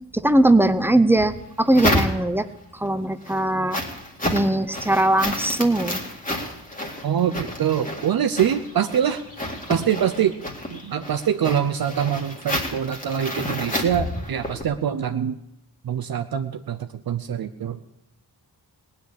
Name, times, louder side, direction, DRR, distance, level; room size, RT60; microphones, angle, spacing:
voice 1, 0.1-2.5 2.7-3.8 4.3-6.0, right 1 dB, 5° right, 11 dB, 0.6 m, -20 dB
sound 1, 1.1-2.6 3.0-14.6, left 1 dB, 20° left, 2.0 m, -30 dB
voice 2, 7.0-9.2 9.7-10.4 10.7-15.4 15.8-17.8, right 9 dB, 60° right, 8 dB, 0.6 m, -24 dB
19.0 x 6.8 x 9.7 m, 0.86 s
wide cardioid pair, 180°, 40 cm